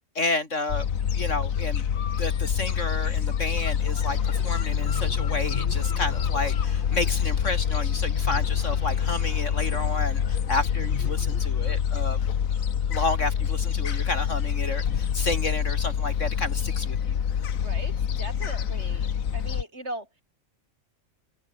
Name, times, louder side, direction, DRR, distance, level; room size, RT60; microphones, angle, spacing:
voice 1, 0.1-0.9 1.1-1.8 2.2-12.2 12.9-17.2, left 2 dB, 65° left, 4.4 m, -31 dB
Gull seagull, 0.7-19.6, left 8 dB, 85° left, 1.6 m, -26 dB
sound 1, 3.8-11.4, left 3 dB, 40° left, 2.4 m, -40 dB
voice 2, 17.6-20.1, right 1 dB, 55° right, 7.4 m, -39 dB
omnidirectional pair, 1.4 m